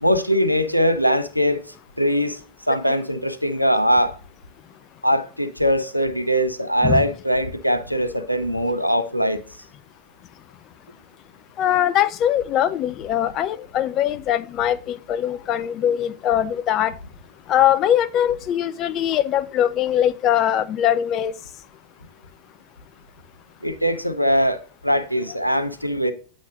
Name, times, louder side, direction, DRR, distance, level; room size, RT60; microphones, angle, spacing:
voice 1, 0.0-1.6 2.0-2.4 2.7-4.2 5.0-9.4 23.6-26.1, equal, 90° left, 0.7 m, -21 dB
voice 2, 11.6-16.9 17.5-21.3, left 11 dB, 35° left, 0.3 m, -21 dB
8.3 x 6.1 x 2.5 m
figure-of-eight pair, 90°, 0 cm